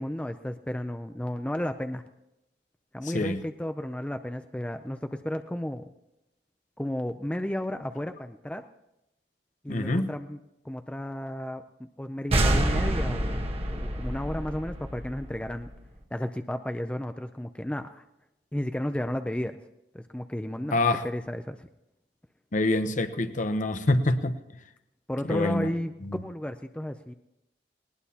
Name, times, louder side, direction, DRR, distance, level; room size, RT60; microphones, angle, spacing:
voice 1, 0.0-2.1 2.9-5.9 6.8-8.7 9.6-10.4 10.6-15.7 16.1-18.0 18.5-19.6 19.9-20.8 21.0-21.7 25.1-27.1, left 1 dB, 5° left, 8 dB, 0.4 m, -33 dB
voice 2, 9.7-10.1 20.7-21.0 22.5-24.4 25.3-25.7 26.1-26.2, left 2 dB, 45° left, 9 dB, 0.9 m, -25 dB
sound 1, 12.3-15.8, right 1 dB, 35° right, 1.3 m, -27 dB
19.5 x 19.0 x 2.9 m, 0.89 s
head